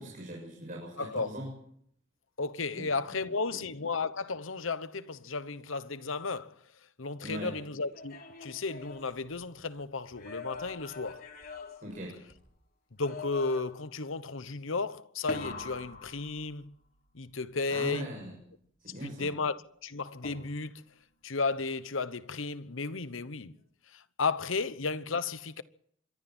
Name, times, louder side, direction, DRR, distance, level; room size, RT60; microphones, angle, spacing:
voice 1, 0.0-1.5 2.8-3.2 3.5-3.6 7.2-7.5 11.8-12.2 17.7-18.4 18.8-19.4, right 1 dB, 45° right, 7.1 m, -40 dB
voice 2, 1.0-1.3 2.4-6.5 7.0-11.2 13.0-16.7 17.1-18.1 19.0-20.8 21.2-23.5 23.9-25.6, left 4 dB, 85° left, 1.0 m, -34 dB
sound 1, 7.8-9.7 10.1-12.5 13.0-13.9 15.3-16.9 20.2-20.9, left 4 dB, 50° left, 3.8 m, -44 dB
26.5 x 23.5 x 4.5 m
head